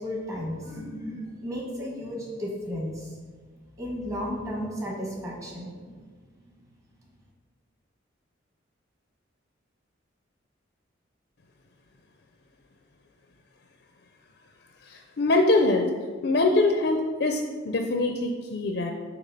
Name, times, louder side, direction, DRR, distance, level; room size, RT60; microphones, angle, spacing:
voice 1, 0.0-3.1 3.8-6.0, equal, 15° right, -2 dB, 1.2 m, -34 dB
voice 2, 14.8-15.9 16.2-18.9, left 2 dB, 60° left, 3 dB, 0.5 m, -23 dB
8.2 x 2.9 x 5.2 m, 1.5 s
head